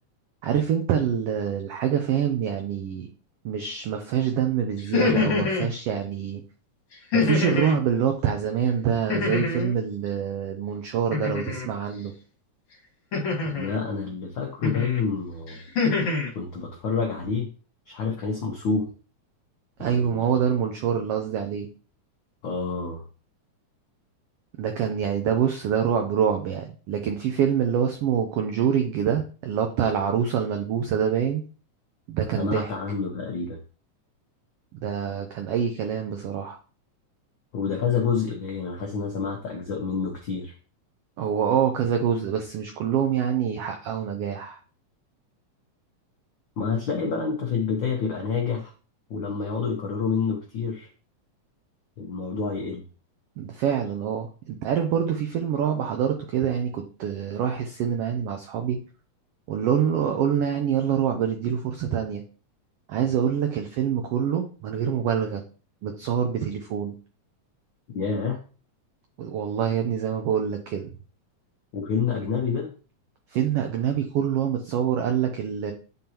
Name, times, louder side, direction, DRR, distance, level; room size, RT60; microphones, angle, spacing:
voice 1, 0.4-3.1 3.4-6.4 7.1-12.1 19.8-21.7 24.6-31.4 32.1-32.7 34.8-36.6 41.2-44.6 53.4-58.8 59.5-62.2 62.9-65.4 65.8-66.9 69.2-70.9 73.3-75.7, right 8 dB, 75° right, 4 dB, 1.4 m, -25 dB
sound 1, 4.8-5.7 7.1-7.8 9.1-9.8 11.1-11.7 13.1-13.8 14.6-15.0 15.5-16.3, left 4 dB, 55° left, 2.2 m, -25 dB
voice 2, 13.4-15.6 16.3-17.5 17.9-18.9 19.8-20.4 22.4-23.0 32.4-33.6 37.5-40.5 46.6-48.7 49.1-50.9 52.0-52.8 67.9-68.4 71.7-72.7, left 5 dB, 80° left, 1 dB, 1.0 m, -28 dB
9.0 x 3.8 x 2.9 m, 0.37 s
omnidirectional pair, 3.4 m